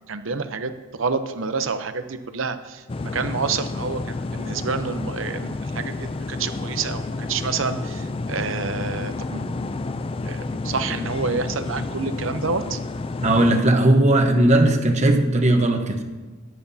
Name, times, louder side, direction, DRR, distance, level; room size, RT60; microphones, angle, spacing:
voice 1, 0.1-2.8 3.1-9.6 10.2-12.8, right 4 dB, 65° right, 10 dB, 0.8 m, -28 dB
sound 1, 2.9-13.6, left 3 dB, 25° left, 0.3 m, -30 dB
voice 2, 13.2-16.0, right 1 dB, 35° right, 5 dB, 1.1 m, -17 dB
13.5 x 11.0 x 2.8 m, 1.3 s
head